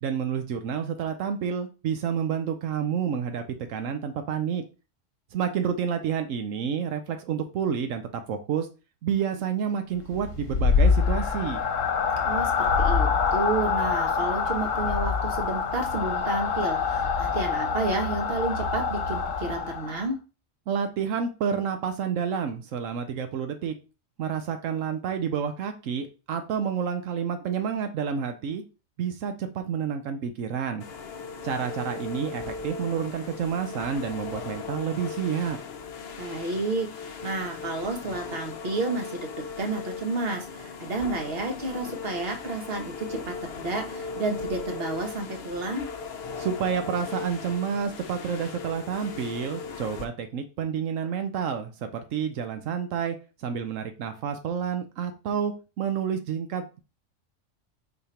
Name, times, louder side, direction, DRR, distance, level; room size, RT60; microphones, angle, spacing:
voice 1, 0.0-3.4 3.7-4.6 5.3-8.7 9.0-11.6 20.7-23.7 24.2-28.6 29.0-30.8 31.4-35.6 46.4-56.8, right 7 dB, 85° right, 7 dB, 1.1 m, -29 dB
sound 1, 10.1-20.1, left 5 dB, 80° left, 1.2 m, -25 dB
voice 2, 12.3-20.2 36.2-45.9, right 3 dB, 50° right, 4 dB, 1.4 m, -31 dB
sound 2, 30.8-50.0, left 5 dB, 60° left, 0.9 m, -38 dB
5.3 x 4.3 x 4.3 m, 0.32 s
omnidirectional pair, 1.3 m